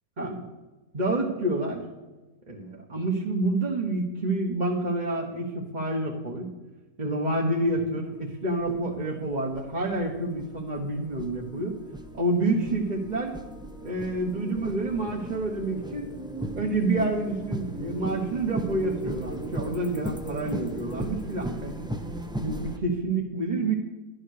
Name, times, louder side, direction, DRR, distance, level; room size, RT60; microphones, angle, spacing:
voice 1, 0.9-1.8 2.5-6.5 7.0-11.8 12.1-13.4 13.8-16.1 16.5-21.8 22.4-23.7, right 2 dB, 30° right, -1 dB, 1.4 m, -28 dB
sound 1, 7.7-7.8 8.5-22.8, right 1 dB, 5° right, 0.7 m, -37 dB
12.5 x 11.0 x 6.6 m, 1.2 s
omnidirectional pair, 1.7 m